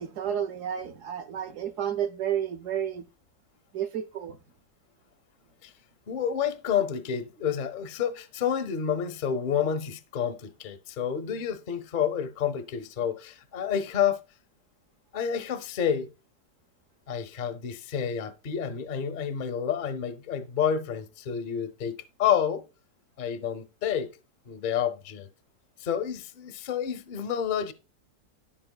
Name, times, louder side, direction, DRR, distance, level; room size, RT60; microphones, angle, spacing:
voice 1, 0.0-3.0 3.7-4.4, right 9 dB, 65° right, 0.8 m, -31 dB
voice 2, 6.1-14.2 15.1-16.1 17.1-22.6 23.2-24.1 24.5-25.3 25.8-27.7, left 8 dB, 60° left, 0.5 m, -29 dB
10.0 x 7.5 x 2.2 m
omnidirectional pair, 1.8 m